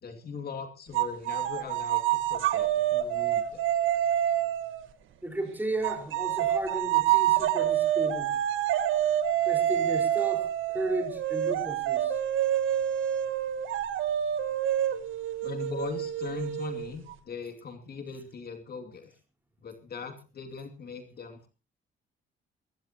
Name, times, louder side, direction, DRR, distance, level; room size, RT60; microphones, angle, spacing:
voice 1, 0.0-3.7 15.4-19.1 19.6-21.5, left 5 dB, 50° left, 4 dB, 2.7 m, -40 dB
sound 1, 0.9-4.9 5.8-17.1, right 11 dB, 85° right, 1.4 m, -27 dB
voice 2, 5.2-8.4 9.4-12.2, right 2 dB, 10° right, 4 dB, 4.8 m, -34 dB
22.0 x 16.5 x 3.0 m, 0.33 s
cardioid pair, 90°, 20 cm